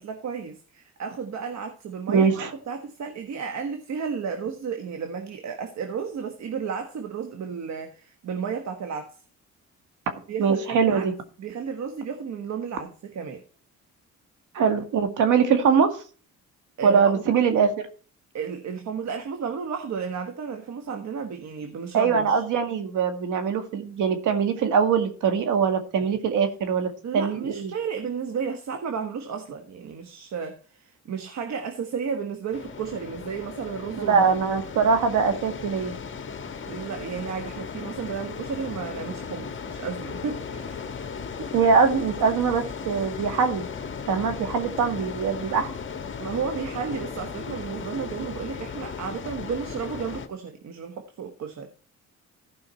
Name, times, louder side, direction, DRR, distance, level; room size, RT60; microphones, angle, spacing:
voice 1, 0.0-9.2 10.3-11.1 11.4-13.4 16.8-17.2 18.3-22.4 27.0-34.3 36.7-40.9 46.2-51.7, right 6 dB, 65° right, 1.5 m, -33 dB
voice 2, 2.1-2.5 10.4-11.1 14.5-15.9 16.8-17.9 21.9-27.7 34.1-36.0 41.5-43.7 44.1-45.7, right 6 dB, 85° right, 2.0 m, -22 dB
sound 1, 32.5-50.3, left 6 dB, 40° left, 1.5 m, -36 dB
15.0 x 5.7 x 4.3 m
cardioid pair, 90°, 30 cm